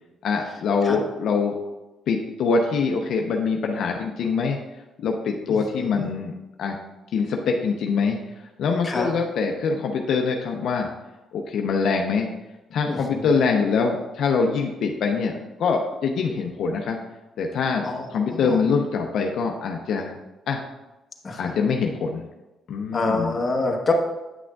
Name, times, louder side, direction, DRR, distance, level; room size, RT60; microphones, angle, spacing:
voice 1, 0.2-1.5 2.1-4.6 5.0-6.8 7.1-8.2 8.6-10.9 11.3-12.3 12.7-17.0 17.4-20.2 20.5-20.6 21.4-22.3 22.7-23.4, left 5 dB, 70° left, 2 dB, 0.6 m, -24 dB
voice 2, 5.5-6.1 8.8-9.1 12.9-13.4 17.8-18.6 21.2-21.5 22.9-23.9, left 3 dB, 35° left, 1 dB, 1.1 m, -27 dB
8.9 x 6.1 x 2.3 m, 1.0 s
cardioid pair, 90°, 0 cm